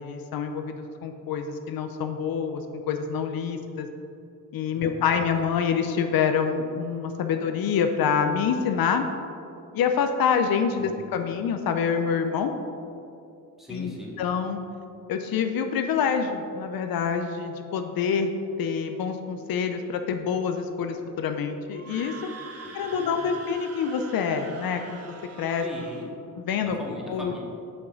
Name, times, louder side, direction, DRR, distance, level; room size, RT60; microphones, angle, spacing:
voice 1, 0.0-3.9 4.5-9.1 9.7-12.5 13.7-13.9 14.2-14.6 15.1-18.3 18.6-22.1 22.7-25.1 25.4-25.6 26.5-26.8 27.1-27.3, left 6 dB, 75° left, 6 dB, 0.6 m, -26 dB
voice 2, 4.7-5.3 10.8-11.0 13.6-14.2 22.6-22.7 23.0-23.4 25.6-26.2 26.8-27.4, left 1 dB, ahead, -4 dB, 1.8 m, -40 dB
Screaming, 21.7-26.1, right 4 dB, 45° right, 1.0 m, -44 dB
6.6 x 5.6 x 5.1 m, 2.6 s
cardioid pair, 95°, 35 cm